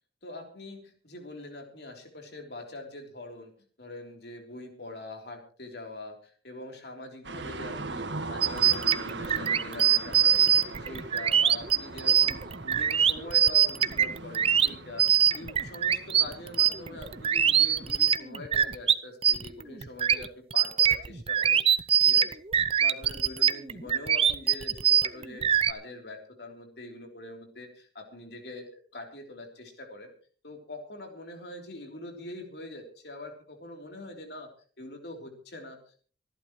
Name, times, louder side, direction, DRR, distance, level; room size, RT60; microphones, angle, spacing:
voice 1, 0.2-3.5 3.8-22.4 22.8-30.1 30.4-34.5 34.8-36.0, left 1 dB, 65° left, 3 dB, 3.5 m, -44 dB
sound 1, 7.2-18.1, right 3 dB, 85° right, 1.6 m, -41 dB
sound 2, 8.4-18.9 19.2-25.7, right 9 dB, 30° right, 0.6 m, -23 dB
26.0 x 11.5 x 3.1 m, 0.42 s
head